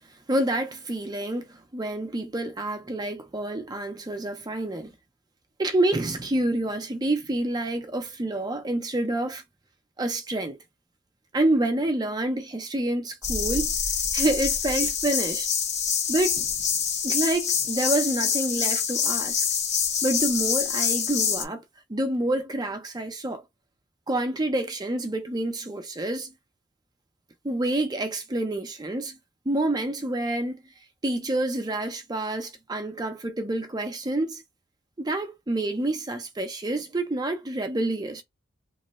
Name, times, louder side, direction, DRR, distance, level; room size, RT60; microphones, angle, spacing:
voice 1, 0.3-4.9 5.6-9.4 10.0-10.6 11.3-13.7 14.1-15.5 16.1-16.5 17.0-19.5 20.0-21.6 21.9-23.4 24.1-26.3 27.4-29.2 29.5-30.6 31.0-34.4 35.0-38.2, right 1 dB, 20° right, 0.5 m, -28 dB
sound 1, 13.2-21.4, left 7 dB, 35° left, 0.8 m, -26 dB
3.0 x 2.1 x 4.0 m
head